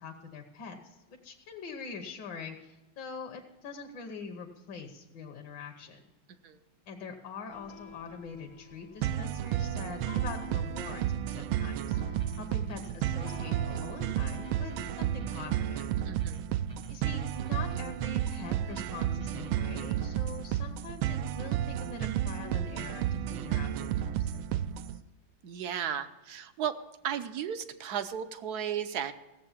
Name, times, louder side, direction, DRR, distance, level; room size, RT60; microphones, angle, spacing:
voice 1, 0.0-6.0 6.9-15.9 16.9-24.7, left 5 dB, 65° left, 3 dB, 1.7 m, -44 dB
sound 1, 7.5-16.2, left 5 dB, 85° left, 2.3 m, -51 dB
sound 2, 9.0-25.0, right 11 dB, 85° right, 1.4 m, -32 dB
sound 3, 12.2-20.1, right 1 dB, 25° right, 0.7 m, -51 dB
voice 2, 16.0-16.5 25.4-26.8 27.0-29.1, right 9 dB, 65° right, 11 dB, 1.0 m, -35 dB
16.0 x 7.5 x 7.3 m, 1.1 s
omnidirectional pair, 2.2 m